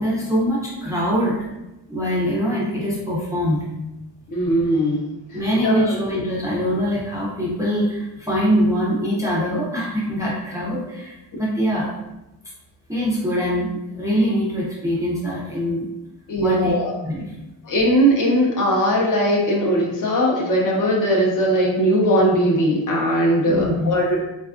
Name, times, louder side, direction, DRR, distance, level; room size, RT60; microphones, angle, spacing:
voice 1, 0.0-1.5 1.9-3.7 5.3-11.9 12.9-15.9 16.4-16.7 17.0-17.3 23.5-24.2, equal, 10° right, -6 dB, 0.3 m, -23 dB
voice 2, 4.3-5.0 5.3-6.0 11.3-11.4 16.3-16.9 17.6-24.2, equal, 45° left, -2 dB, 0.5 m, -19 dB
3.5 x 2.2 x 2.4 m, 0.94 s
wide cardioid pair, 180°, 44 cm